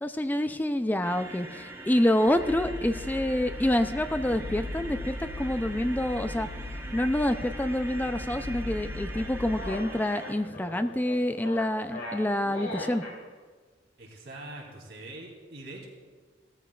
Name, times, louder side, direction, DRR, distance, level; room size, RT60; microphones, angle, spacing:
voice 1, 0.0-6.5 6.9-13.0, left 1 dB, 10° left, 9 dB, 0.4 m, -27 dB
sound 1, 1.0-10.3, right 2 dB, 15° right, 1.1 m, -43 dB
sound 2, 2.3-9.7, left 1 dB, 40° left, 2.1 m, -38 dB
sound 3, 9.1-13.2, left 1 dB, 85° left, 3.3 m, -40 dB
voice 2, 14.0-15.9, right 2 dB, 70° right, -1 dB, 2.8 m, -43 dB
16.5 x 14.0 x 2.4 m, 1.4 s
head